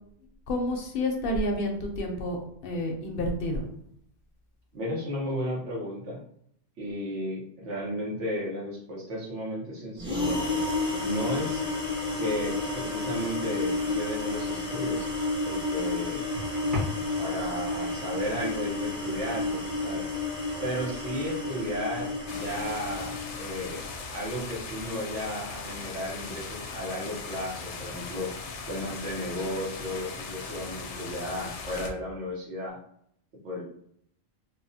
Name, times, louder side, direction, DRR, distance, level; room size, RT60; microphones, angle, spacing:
voice 1, 0.5-3.7, left 1 dB, 60° left, 2 dB, 0.7 m, -29 dB
voice 2, 4.7-6.2 6.8-10.4 11.0-11.7 12.2-15.1 15.4-16.2 17.2-20.1 20.6-23.8 24.1-28.3 28.6-32.8 33.4-33.6, equal, 90° right, -3 dB, 1.3 m, -34 dB
sound 1, 10.0-23.9, left 3 dB, 5° right, 0.6 m, -31 dB
sound 2, 14.8-23.0, left 2 dB, 45° right, 1.2 m, -42 dB
sound 3, 22.3-31.9, left 4 dB, 90° left, 0.9 m, -39 dB
3.4 x 2.1 x 2.7 m, 0.68 s
omnidirectional pair, 1.2 m